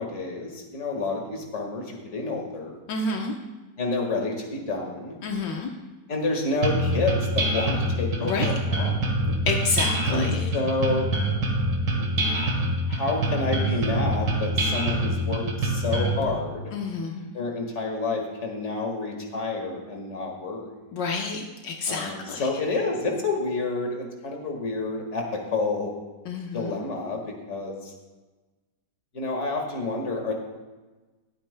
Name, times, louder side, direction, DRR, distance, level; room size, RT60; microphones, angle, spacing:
voice 1, 0.0-2.8 3.8-5.2 6.1-9.3 10.1-10.3 10.5-11.1 11.9-12.5 12.9-16.7 17.3-20.7 21.9-25.9 26.5-27.9 29.1-30.3, left 3 dB, 40° left, 1 dB, 1.9 m, -29 dB
voice 2, 2.9-3.3 5.2-5.7 8.3-8.5 9.5-10.5 16.7-17.3 20.9-22.4 26.3-26.8, left 4 dB, 75° left, 1 dB, 1.6 m, -29 dB
sound 1, 6.6-16.2, right 1 dB, 75° right, 2.4 m, -25 dB
22.0 x 8.8 x 2.2 m, 1.2 s
omnidirectional pair, 1.9 m